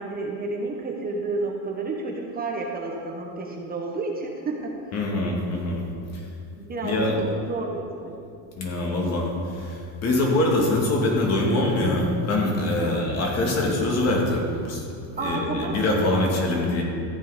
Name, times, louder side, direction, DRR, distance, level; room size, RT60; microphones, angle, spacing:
voice 1, 0.0-4.7 6.6-8.2 12.8-13.0 15.2-16.7, right 3 dB, 25° right, 0 dB, 1.2 m, -31 dB
voice 2, 4.9-5.8 6.8-7.1 8.6-14.8 15.2-16.8, left 2 dB, 40° left, -1 dB, 2.5 m, -24 dB
14.0 x 9.0 x 5.1 m, 2.4 s
cardioid pair, 145°, 39 cm